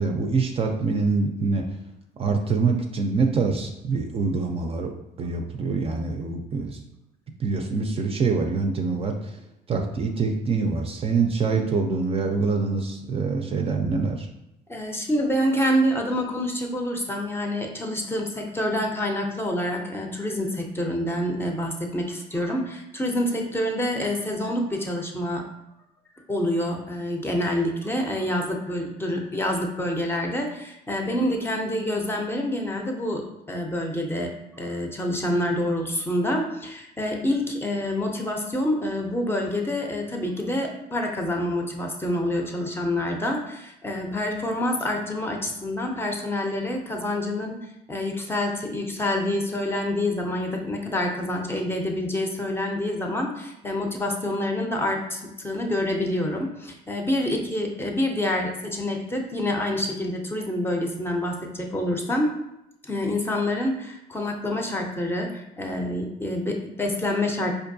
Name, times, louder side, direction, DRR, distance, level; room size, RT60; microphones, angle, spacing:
voice 1, 0.0-1.6 2.2-4.9 5.2-6.8 7.4-9.1 9.7-14.3, right 4 dB, 35° right, 3 dB, 0.4 m, -25 dB
voice 2, 14.7-25.4 26.3-47.6 47.9-62.3 62.8-67.5, left 1 dB, 15° left, 2 dB, 0.5 m, -27 dB
4.4 x 2.6 x 2.6 m, 0.85 s
cardioid pair, 110°, 17 cm